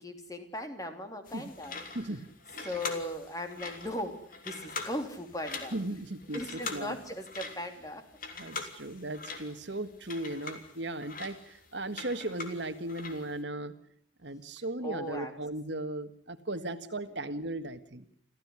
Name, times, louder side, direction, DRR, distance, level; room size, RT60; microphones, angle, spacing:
voice 1, 0.0-1.8 2.6-5.7 6.3-8.1 14.8-15.3, left 1 dB, 20° left, 6 dB, 3.2 m, -38 dB
sound 1, 1.3-13.4, left 4 dB, 45° left, 3.3 m, -43 dB
voice 2, 1.9-2.7 5.7-7.0 8.4-13.7 14.2-18.1, right 1 dB, 65° right, 10 dB, 1.7 m, -37 dB
29.0 x 15.0 x 9.7 m, 0.62 s
head